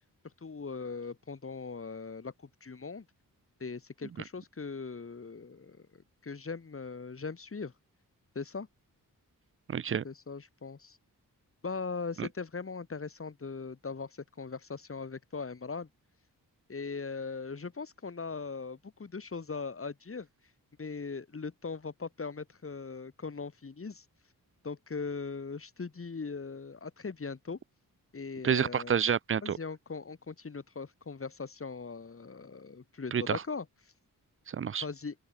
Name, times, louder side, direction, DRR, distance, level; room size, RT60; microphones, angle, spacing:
voice 1, 0.4-2.3 2.6-3.0 3.6-7.7 8.3-8.7 10.0-11.0 11.6-15.9 16.7-20.3 20.8-24.0 24.6-27.6 28.1-29.0 29.4-33.7 34.8-35.1, left 4 dB, 40° left, 3.2 m, -40 dB
voice 2, 9.7-10.0 12.2-12.3 28.4-29.6 33.1-33.4 34.5-34.8, right 7 dB, 40° right, 0.5 m, -29 dB
open air
cardioid pair, 90°, 35 cm